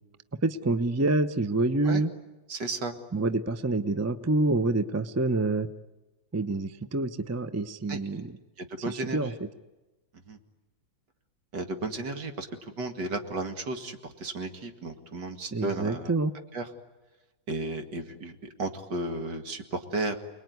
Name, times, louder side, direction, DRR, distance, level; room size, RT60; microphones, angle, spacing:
voice 1, 0.4-2.1 3.1-5.7 6.3-8.3 8.9-9.3 15.5-16.3, right 2 dB, 25° right, 12 dB, 0.3 m, -27 dB
voice 2, 2.5-2.9 7.9-8.0 8.6-9.4 10.3-10.4 11.5-16.1 16.5-16.7 17.5-20.2, right 2 dB, 70° right, 6 dB, 2.7 m, -34 dB
29.0 x 21.0 x 9.5 m, 1.1 s
omnidirectional pair, 1.9 m